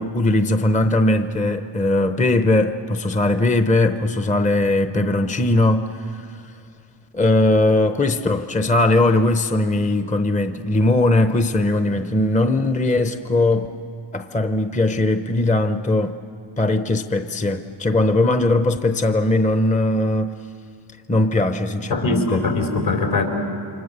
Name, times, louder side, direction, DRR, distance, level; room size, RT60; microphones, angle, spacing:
voice 1, 0.0-6.3 7.1-13.7 14.1-16.2 16.6-20.3 21.1-22.4, left 2 dB, 15° left, 0.8 m, -19 dB
voice 2, 21.9-23.2, left 3 dB, 75° left, 4.5 m, -21 dB
29.0 x 25.0 x 6.7 m
wide cardioid pair, 105°, 49 cm